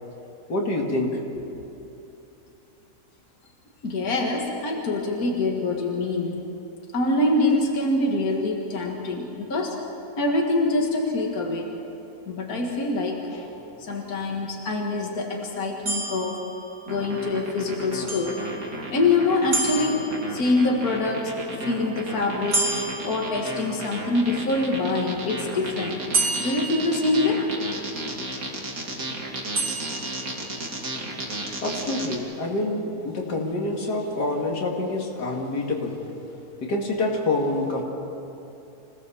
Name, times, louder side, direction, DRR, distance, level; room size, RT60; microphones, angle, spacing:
voice 1, 0.5-1.5 31.6-35.9 36.6-37.8, left 2 dB, 85° left, -1 dB, 2.8 m, -26 dB
voice 2, 3.8-6.4 6.9-9.8 10.2-11.7 12.3-13.5 13.8-16.4 16.9-18.4 18.9-21.3 21.6-22.7 23.0-26.0 26.4-27.5, left 2 dB, 65° left, 0 dB, 2.4 m, -25 dB
sound 1, 15.9-17.2 18.1-19.0 19.5-20.7 22.5-24.0 26.1-27.7 29.5-30.7, right 2 dB, 80° right, 4.3 m, -30 dB
sound 2, 16.9-32.2, right 2 dB, 60° right, 2.8 m, -34 dB
26.5 x 17.5 x 7.1 m, 2.9 s
omnidirectional pair, 1.7 m